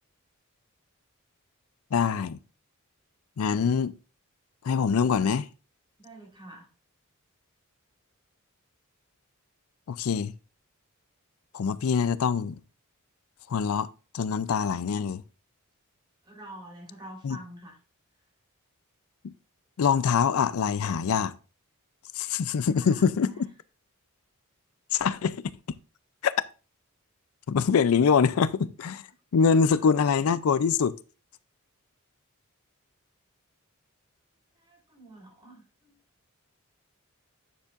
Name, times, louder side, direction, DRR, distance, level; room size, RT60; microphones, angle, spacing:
voice 1, 1.9-2.4 3.4-4.0 4.6-5.5 9.9-10.3 11.5-12.6 13.5-15.2 17.2-17.4 19.8-21.3 22.2-23.3 24.9-25.5 26.2-26.3 27.5-29.1 29.3-31.0, left 6 dB, 80° left, 0.4 m, -24 dB
voice 2, 6.0-6.7 16.2-17.8 22.5-23.5 29.4-29.9 34.6-36.0, right 1 dB, 20° right, 3.7 m, -47 dB
9.3 x 7.1 x 2.5 m
head